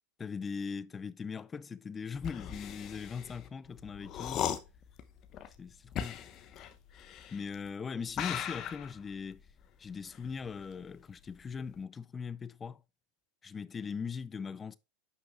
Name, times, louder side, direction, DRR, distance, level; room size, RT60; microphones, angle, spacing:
voice 1, 0.2-4.5 5.6-6.2 7.3-9.4 9.8-12.8 13.4-14.7, left 6 dB, 25° left, 0.5 m, -40 dB
sound 1, 2.1-7.7 8.1-11.0 11.3-11.7, left 9 dB, 40° left, 0.9 m, -39 dB
9.8 x 5.8 x 2.3 m
hypercardioid pair, 90°, 0 cm